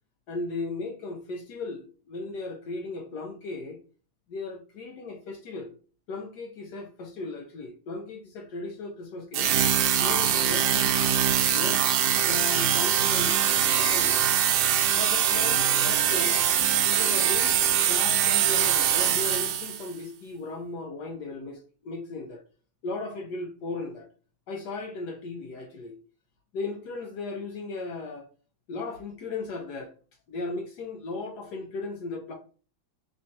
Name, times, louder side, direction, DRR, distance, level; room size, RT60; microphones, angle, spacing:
voice 1, 0.3-3.8 4.3-5.8 6.1-9.5 10.0-11.1 11.5-14.2 14.9-16.4 16.8-22.4 22.8-24.1 24.5-25.9 26.5-28.3 28.7-29.9 30.3-32.3, left 3 dB, 65° left, 1.2 m, -36 dB
sound 1, 9.3-19.9, right 9 dB, 70° right, 1.0 m, -23 dB
3.5 x 3.2 x 2.7 m
omnidirectional pair, 2.0 m